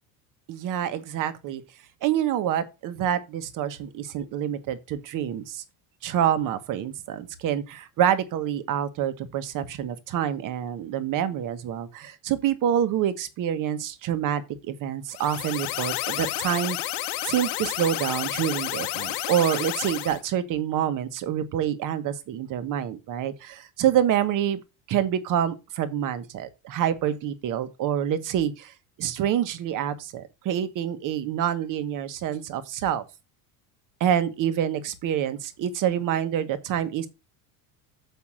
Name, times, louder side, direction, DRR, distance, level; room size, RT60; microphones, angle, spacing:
voice 1, 0.5-1.6 2.0-5.6 6.0-16.8 17.2-24.6 24.9-28.7 29.0-33.0 34.0-37.1, right 10 dB, 45° right, 1.2 m, -27 dB
sound 1, 15.1-20.2, left 15 dB, 65° left, 1.1 m, -31 dB
7.4 x 5.7 x 6.2 m
cardioid pair, 160°, 43 cm